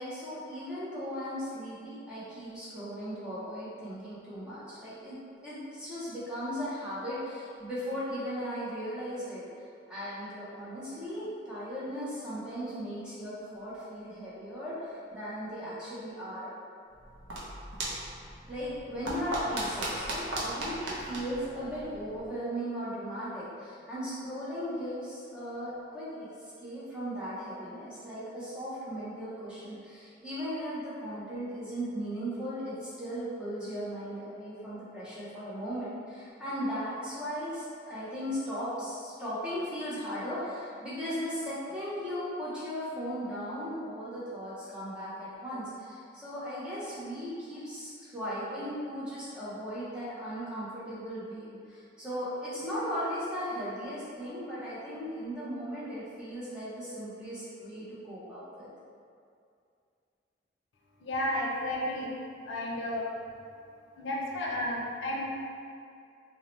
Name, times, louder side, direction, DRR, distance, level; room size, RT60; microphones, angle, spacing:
voice 1, 0.0-5.2 5.4-9.4 9.9-16.5 18.5-26.3 26.6-58.7, equal, 5° right, -11 dB, 0.5 m, -37 dB
sound 1, 16.9-22.3, right 1 dB, 80° right, 0.5 m, -37 dB
voice 2, 61.0-62.1 62.5-63.1 64.0-65.2, left 1 dB, 80° left, -4 dB, 0.5 m, -32 dB
2.6 x 2.0 x 3.0 m, 2.4 s
head